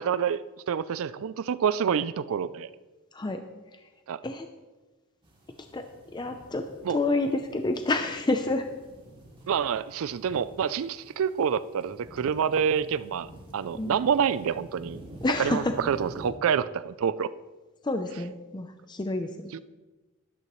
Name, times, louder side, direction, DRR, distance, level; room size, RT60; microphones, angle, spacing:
voice 1, 0.0-2.7 4.1-4.2 6.8-7.0 9.5-13.3 13.5-15.0 15.4-17.3 19.5-19.6, right 7 dB, 65° right, 16 dB, 0.4 m, -27 dB
sound 1, 5.2-16.3, right 1 dB, 20° right, 2.4 m, -48 dB
voice 2, 5.7-8.7 13.7-14.0 15.2-15.7 17.8-19.6, left 2 dB, 20° left, 6 dB, 0.5 m, -29 dB
12.5 x 12.0 x 3.1 m, 1.2 s
head